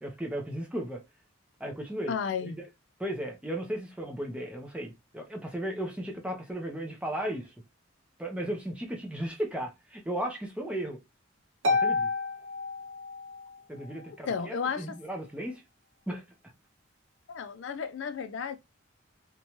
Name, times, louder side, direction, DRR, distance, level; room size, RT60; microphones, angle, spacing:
voice 1, 0.0-1.0 1.6-2.1 2.4-2.6 3.0-7.5 8.2-11.0 11.7-12.1 13.7-15.6 16.1-16.2, right 1 dB, 5° right, 0.6 m, -35 dB
voice 2, 2.1-2.5 14.3-15.0 17.3-18.6, left 6 dB, 65° left, 0.3 m, -33 dB
Harp, 11.6-13.5, left 3 dB, 70° right, 0.6 m, -29 dB
2.7 x 2.2 x 2.9 m
head